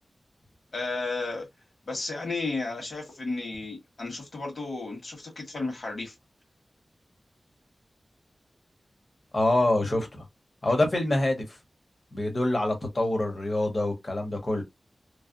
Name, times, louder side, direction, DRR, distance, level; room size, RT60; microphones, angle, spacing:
voice 1, 0.7-1.5 1.9-6.1, left 3 dB, 60° left, 1.8 m, -33 dB
voice 2, 9.3-10.2 10.6-11.5 12.1-14.6, left 1 dB, 45° left, 1.2 m, -25 dB
3.2 x 2.2 x 2.6 m
wide cardioid pair, 95°, 0 cm